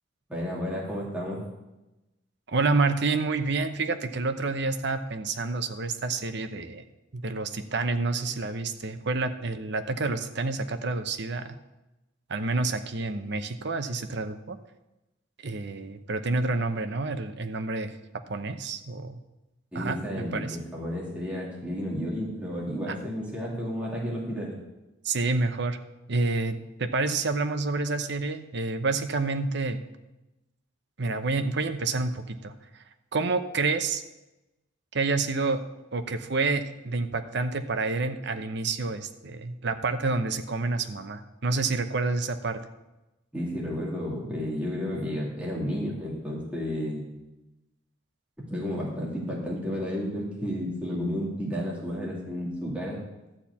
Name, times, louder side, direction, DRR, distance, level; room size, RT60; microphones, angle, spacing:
voice 1, 0.3-1.4 19.7-24.6 43.3-47.0 48.5-53.0, equal, 5° right, -5 dB, 2.5 m, -32 dB
voice 2, 2.5-6.8 7.1-11.6 12.3-14.6 15.4-18.0 18.3-19.2 19.7-20.6 22.9-23.0 25.0-25.8 26.1-29.8 31.0-32.8 33.1-34.0 34.9-35.6 35.9-42.6, right 3 dB, 65° right, 9 dB, 0.8 m, -28 dB
12.5 x 4.4 x 8.4 m, 0.99 s
head